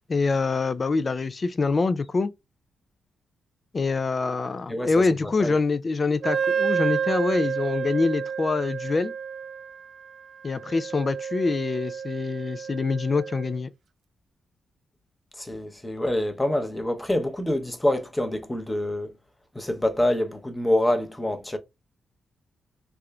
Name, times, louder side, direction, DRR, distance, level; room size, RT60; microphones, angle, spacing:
voice 1, 0.1-2.3 3.7-9.1 10.4-13.7, left 4 dB, 40° left, 0.3 m, -25 dB
voice 2, 5.2-5.6 15.4-19.1 19.5-21.6, left 1 dB, 10° left, 0.7 m, -26 dB
Wind instrument woodwind instrument, 6.2-13.6, right 7 dB, 65° right, 0.3 m, -30 dB
3.7 x 3.3 x 2.2 m
cardioid pair, 85°, 0 cm